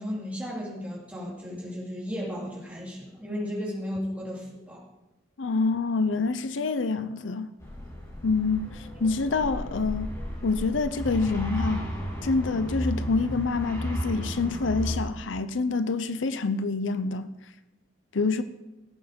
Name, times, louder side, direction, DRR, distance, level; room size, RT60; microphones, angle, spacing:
voice 1, 0.0-4.8, equal, 5° right, 3.7 m, -34 dB
voice 2, 5.4-7.5 8.2-10.1 10.4-11.8 12.2-17.3 18.1-18.4, left 4 dB, 80° left, 0.6 m, -26 dB
sound 1, 7.6-15.0, equal, 15° left, 3.4 m, -34 dB
17.5 x 7.8 x 5.3 m
head